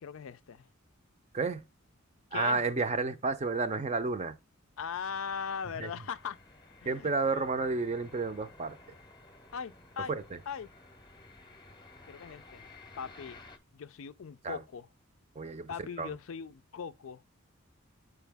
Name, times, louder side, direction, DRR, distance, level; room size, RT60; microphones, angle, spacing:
voice 1, 0.0-0.7 2.3-2.6 4.8-6.4 6.8-7.4 9.5-10.2 10.5-10.7 12.1-12.7 13.0-13.4 13.7-14.9 15.7-17.2, left 6 dB, 60° left, 0.4 m, -40 dB
voice 2, 1.3-1.6 2.3-4.4 5.8-5.9 6.8-8.9 10.1-10.4 14.4-14.6 15.3-16.1, right 3 dB, 30° right, 0.5 m, -31 dB
sound 1, 4.8-13.6, left 3 dB, 20° left, 0.8 m, -55 dB
8.0 x 4.6 x 3.4 m
head